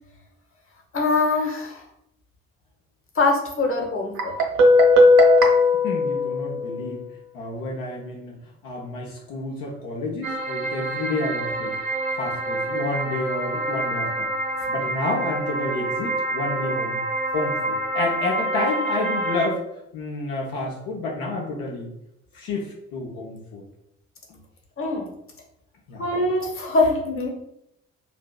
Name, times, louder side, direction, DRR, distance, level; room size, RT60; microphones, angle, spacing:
voice 1, 0.9-1.8 3.1-4.3 24.8-25.1 26.0-27.3, left 3 dB, 35° left, 1 dB, 1.1 m, -23 dB
Guitar, 4.2-7.0, left 2 dB, 65° right, 1.0 m, -17 dB
voice 2, 5.8-7.1 7.3-8.4 8.6-11.7 12.1-14.3 14.7-17.0 17.3-19.6 19.9-21.9 22.3-23.6 24.3-24.4 25.9-26.0, left 2 dB, 60° left, -2 dB, 0.8 m, -30 dB
sound 1, 10.2-19.5, right 2 dB, 90° right, 0.5 m, -27 dB
5.0 x 2.8 x 2.3 m, 0.80 s
figure-of-eight pair, 40°, 39 cm